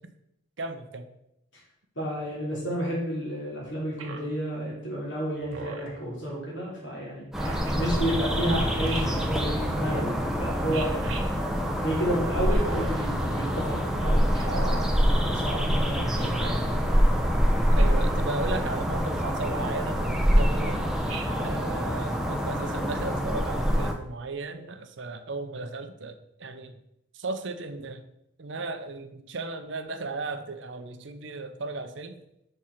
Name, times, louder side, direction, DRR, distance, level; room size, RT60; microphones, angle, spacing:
voice 1, 0.6-1.1 17.7-20.8 21.4-26.8 27.1-28.0 28.4-32.2, right 3 dB, 65° right, 8 dB, 0.7 m, -36 dB
voice 2, 1.9-7.3 7.8-10.9 11.8-16.9, right 1 dB, 65° left, -4 dB, 3.0 m, -31 dB
Speech synthesizer, 4.0-4.4 5.5-6.0 7.4-7.7 8.9-9.4 10.7-11.2 12.5-13.1 14.3-14.9 16.2-16.6 17.8-18.1 19.5-19.8 21.1-21.6, right 4 dB, 85° right, 1.1 m, -39 dB
sound 1, 5.4-6.4 8.9-9.9, left 2 dB, 85° left, 0.9 m, -44 dB
sound 2, 7.3-23.9, equal, ahead, 0.6 m, -25 dB
6.5 x 4.4 x 5.8 m, 0.81 s
head